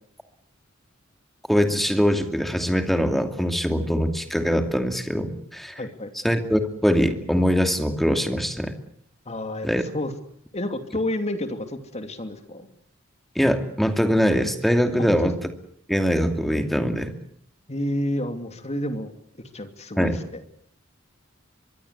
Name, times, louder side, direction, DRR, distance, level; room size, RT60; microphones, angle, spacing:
voice 1, 1.5-5.7 6.2-8.7 9.6-9.8 13.4-15.3 15.9-17.1 20.0-20.2, equal, ahead, 6 dB, 2.5 m, -22 dB
voice 2, 5.8-6.1 9.3-10.1 10.5-12.7 15.0-15.3 17.7-19.1 19.5-20.4, left 1 dB, 35° left, 7 dB, 2.8 m, -30 dB
23.5 x 23.0 x 8.2 m, 0.66 s
head